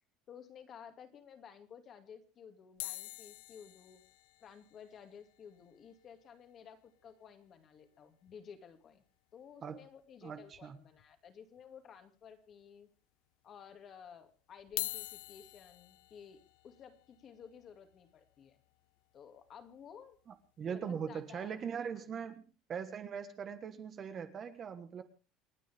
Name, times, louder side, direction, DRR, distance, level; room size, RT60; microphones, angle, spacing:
voice 1, 0.3-4.0 4.4-9.0 9.3-12.9 13.4-16.4 16.6-18.6 19.1-20.2 20.7-21.6 22.1-22.3, left 7 dB, 30° left, 7 dB, 2.4 m, -54 dB
sound 1, 2.8-7.1 7.4-7.5 7.7-7.9 8.3-8.4 9.7-9.8 10.5-11.1 11.6-11.7 12.5-12.6 14.6-20.7 21.3-21.5, left 21 dB, 80° left, 0.7 m, -47 dB
voice 2, 10.2-10.8 20.6-25.0, right 7 dB, 25° right, 9 dB, 1.4 m, -41 dB
29.0 x 9.7 x 3.5 m, 0.33 s
cardioid pair, 175°, 0 cm